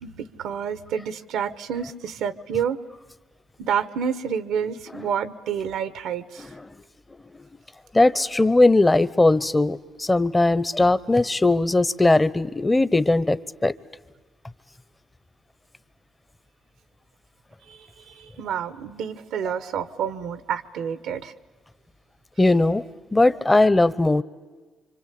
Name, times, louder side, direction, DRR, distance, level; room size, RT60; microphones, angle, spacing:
voice 1, 0.0-2.8 3.6-6.5 17.7-21.3, right 7 dB, 80° right, 14 dB, 1.2 m, -29 dB
voice 2, 7.9-13.7 22.4-22.8 23.1-24.2, left 2 dB, 20° left, 17 dB, 1.0 m, -19 dB
26.5 x 25.5 x 8.5 m, 1.3 s
supercardioid pair, 65°, 0 cm